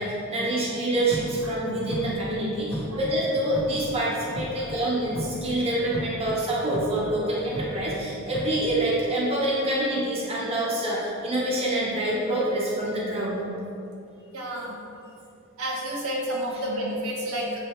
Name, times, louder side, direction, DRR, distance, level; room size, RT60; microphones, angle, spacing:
voice 1, 0.0-13.5, right 1 dB, 25° right, -5 dB, 1.0 m, -26 dB
sound 1, 1.0-5.6 5.9-6.3 6.7-8.8, equal, 80° left, 1.4 m, -36 dB
voice 2, 14.3-14.7 15.6-17.6, right 1 dB, 85° right, -3 dB, 1.3 m, -30 dB
7.8 x 3.4 x 4.4 m, 2.6 s
head